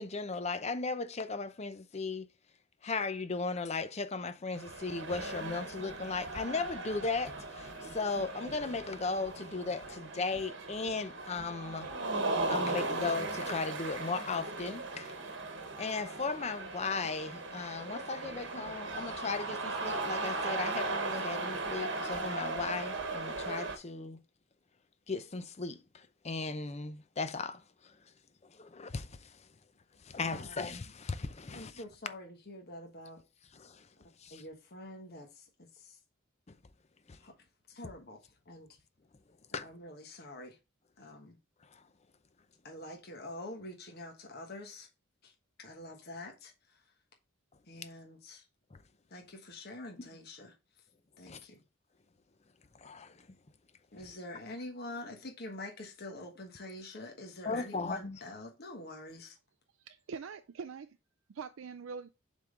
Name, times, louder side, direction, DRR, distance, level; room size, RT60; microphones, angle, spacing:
voice 1, 0.0-2.3 2.8-11.9 12.5-15.1 15.8-24.2 25.1-28.0 28.4-29.5 30.0-31.8 33.5-33.9 34.2-34.4 36.5-36.6 37.1-37.2 39.5-39.7 41.7-41.8 48.7-48.8 50.0-50.1 51.3-51.4 52.7-53.3 54.0-54.1 57.4-58.2, left 4 dB, 35° left, 0.6 m, -37 dB
sound 1, 4.5-23.8, right 2 dB, 60° right, 1.2 m, -37 dB
voice 2, 31.5-33.2 34.3-35.4 35.8-35.9 37.2-37.3 37.7-38.2 38.5-38.7 39.6-40.5 41.0-41.4 42.6-44.9 45.2-45.3 45.6-46.5 47.7-48.4 49.1-50.5 51.2-51.6 53.9-59.4, left 2 dB, 50° left, 1.3 m, -46 dB
voice 3, 59.8-60.9 61.3-62.1, right 5 dB, 80° right, 0.4 m, -43 dB
7.3 x 3.7 x 3.7 m
head